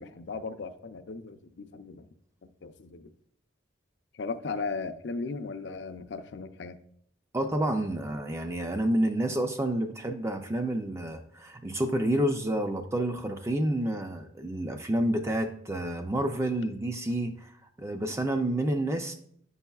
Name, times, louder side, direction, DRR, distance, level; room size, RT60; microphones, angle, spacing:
voice 1, 0.0-2.1 2.6-3.1 4.1-6.8, left 4 dB, 65° left, 9 dB, 0.4 m, -37 dB
voice 2, 7.3-19.1, right 1 dB, 15° right, 5 dB, 0.4 m, -29 dB
9.7 x 5.5 x 2.3 m, 0.68 s
head